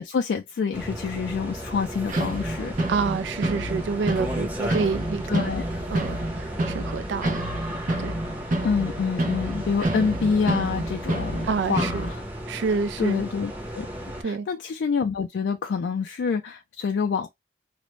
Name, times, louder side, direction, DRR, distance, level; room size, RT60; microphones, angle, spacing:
voice 1, 0.0-2.7 4.8-4.9 5.3-5.6 8.6-12.2 13.0-13.9 14.2-17.3, left 5 dB, 70° left, 0.3 m, -27 dB
sound 1, 0.7-14.2, equal, 10° right, 0.8 m, -35 dB
sound 2, 2.1-12.1, right 1 dB, 45° right, 0.7 m, -29 dB
voice 2, 2.9-5.5 5.9-7.4 8.0-8.1 11.4-12.0 12.5-13.2 14.2-14.5, right 5 dB, 75° right, 0.3 m, -28 dB
2.5 x 2.1 x 3.0 m
head